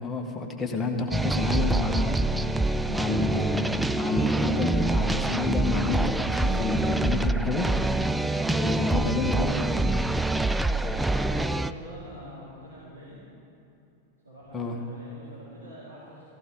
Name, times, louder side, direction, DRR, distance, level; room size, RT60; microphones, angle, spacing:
voice 1, 0.0-2.2 2.9-7.7 8.5-9.6 14.5-14.8, left 3 dB, 15° left, 2 dB, 1.7 m, -29 dB
sound 1, 1.1-11.7, right 2 dB, 5° right, 0.4 m, -26 dB
voice 2, 10.6-13.2 14.2-16.3, equal, 80° right, -11 dB, 4.0 m, -45 dB
16.5 x 15.0 x 4.1 m, 2.7 s
figure-of-eight pair, 90°, 0 cm